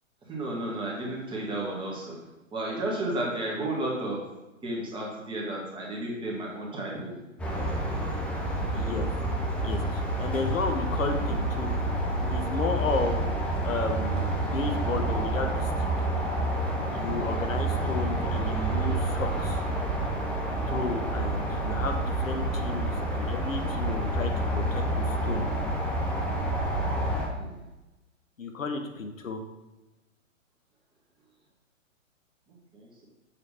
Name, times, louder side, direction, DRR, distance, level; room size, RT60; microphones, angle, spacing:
voice 1, 0.3-2.2 2.5-4.2 4.6-7.1 27.3-27.6 32.7-33.0, right 1 dB, 10° right, -3 dB, 1.5 m, -32 dB
sound 1, 7.4-27.3, right 1 dB, 5° left, 0.5 m, -28 dB
voice 2, 8.7-9.1 9.6-11.7 12.3-13.3 13.6-16.1 16.9-19.6 20.7-25.5 28.4-29.4, left 3 dB, 85° left, 5 dB, 1.0 m, -33 dB
7.1 x 3.2 x 5.5 m, 1.1 s
hypercardioid pair, 125°, 39 cm